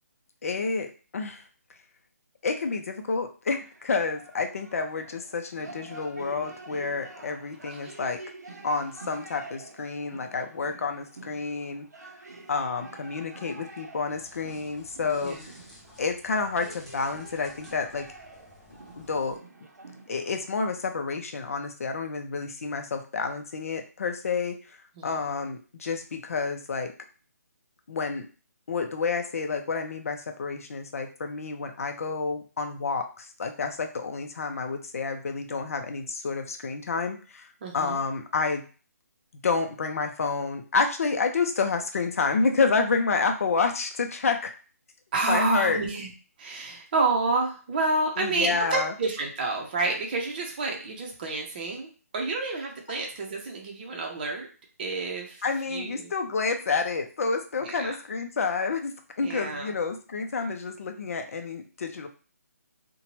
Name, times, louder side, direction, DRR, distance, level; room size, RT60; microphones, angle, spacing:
voice 1, 0.4-1.4 2.4-8.2 8.6-11.9 12.5-15.4 16.0-18.1 19.0-19.4 20.1-24.8 25.0-26.9 27.9-28.3 28.7-37.5 37.7-38.7 39.4-44.5 45.2-45.8 48.2-48.9 55.4-62.1, left 4 dB, 60° left, 5 dB, 0.5 m, -29 dB
sound 1, 3.6-20.5, right 3 dB, 90° right, 0.7 m, -47 dB
sound 2, 14.1-19.4, left 1 dB, 5° left, 0.4 m, -54 dB
voice 2, 15.2-15.5 25.0-25.3 37.6-38.0 45.1-46.1 46.4-54.5 54.8-56.1 57.6-57.9 59.2-59.8, right 3 dB, 35° right, 1 dB, 0.6 m, -29 dB
2.7 x 2.2 x 3.0 m, 0.37 s
hypercardioid pair, 160°, 9 cm